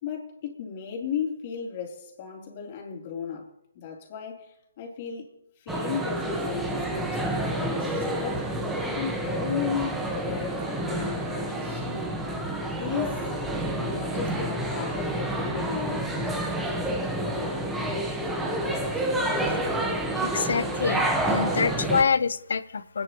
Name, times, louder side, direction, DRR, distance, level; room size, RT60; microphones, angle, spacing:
voice 1, 0.0-3.5 3.7-5.3 5.6-8.5 8.9-11.8 12.7-13.3 13.9-16.6 17.2-17.8, left 7 dB, 35° left, 3.5 m, -35 dB
sound 1, 5.7-22.0, right 1 dB, 5° right, 1.3 m, -29 dB
voice 2, 20.2-23.0, left 5 dB, 70° left, 0.8 m, -26 dB
28.0 x 10.0 x 3.1 m
hypercardioid pair, 155°, 0 cm